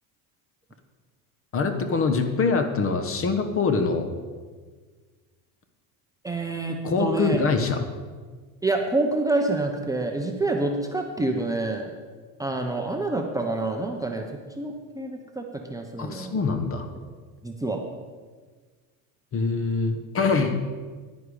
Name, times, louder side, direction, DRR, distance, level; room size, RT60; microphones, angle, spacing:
voice 1, 1.5-4.1 6.8-7.8 16.0-16.9 19.3-20.5, left 4 dB, 30° left, 7 dB, 1.2 m, -24 dB
voice 2, 6.2-7.4 8.6-11.9 12.4-16.3 17.4-17.8, right 2 dB, 10° right, 2 dB, 0.8 m, -27 dB
10.0 x 10.0 x 4.9 m, 1.5 s
supercardioid pair, 125°, 41 cm